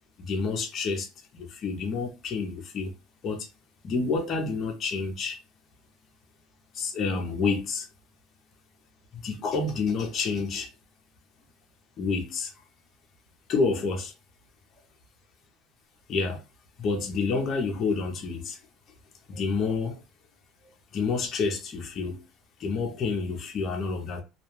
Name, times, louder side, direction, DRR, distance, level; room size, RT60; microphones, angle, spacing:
voice 1, 0.2-1.1 1.3-2.9 3.2-3.5 3.8-5.4 6.7-7.9 9.1-10.7 12.0-12.5 13.5-14.1 16.1-16.4 16.8-18.6 19.3-20.0 20.9-22.2 22.6-24.2, left 4 dB, 35° left, 0.6 m, -28 dB
2.2 x 2.2 x 3.0 m
cardioid pair, 150°, 0 cm